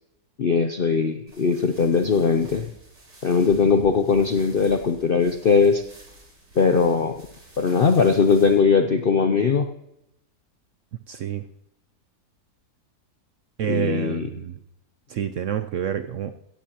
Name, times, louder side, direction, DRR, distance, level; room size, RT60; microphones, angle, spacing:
voice 1, 0.4-2.7 3.2-5.8 6.6-7.2 7.6-9.7 13.7-14.3, left 5 dB, 60° left, 7 dB, 0.5 m, -20 dB
sound 1, 1.3-8.6, right 1 dB, 90° right, 4.3 m, -48 dB
voice 2, 11.1-11.4 13.6-14.6 15.1-16.3, right 9 dB, 65° right, 9 dB, 0.8 m, -28 dB
16.5 x 15.0 x 3.0 m, 0.82 s
omnidirectional pair, 1.8 m